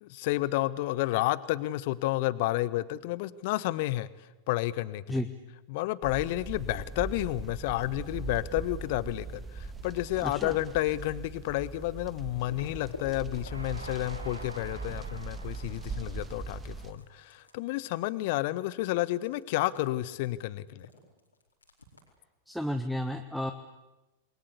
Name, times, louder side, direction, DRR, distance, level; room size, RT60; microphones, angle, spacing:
voice 1, 0.0-4.1 4.5-5.2 5.7-20.9, left 17 dB, 50° left, 18 dB, 1.0 m, -31 dB
sound 1, 6.0-16.9, right 4 dB, 15° right, 1.6 m, -40 dB
sound 2, 8.3-9.2 9.5-22.2, left 3 dB, 80° left, 4.6 m, -53 dB
voice 2, 10.2-10.5 22.5-23.5, left 1 dB, ahead, 6 dB, 1.3 m, -32 dB
Train, 13.5-17.9, right 2 dB, 85° right, 2.3 m, -48 dB
28.0 x 22.0 x 8.3 m, 1.0 s
figure-of-eight pair, 90°, 0 cm